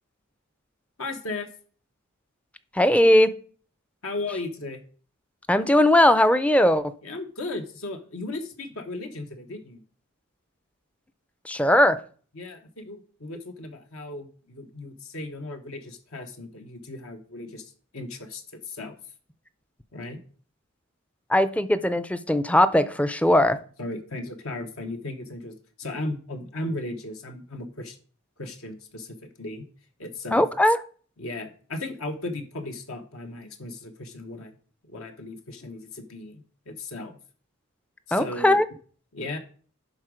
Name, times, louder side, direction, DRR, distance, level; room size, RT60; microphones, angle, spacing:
voice 1, 1.0-1.5 4.0-4.8 7.0-9.8 12.3-18.9 19.9-20.2 23.8-28.0 28.4-29.7 30.0-30.4 31.2-34.5 34.8-37.2 38.1-38.6 39.1-39.4, left 2 dB, 75° left, 1.1 m, -36 dB
voice 2, 2.8-3.3 5.5-6.9 11.5-12.0 21.3-23.6 30.3-30.8 38.1-38.6, left 1 dB, 5° left, 0.4 m, -19 dB
11.0 x 3.9 x 5.0 m
head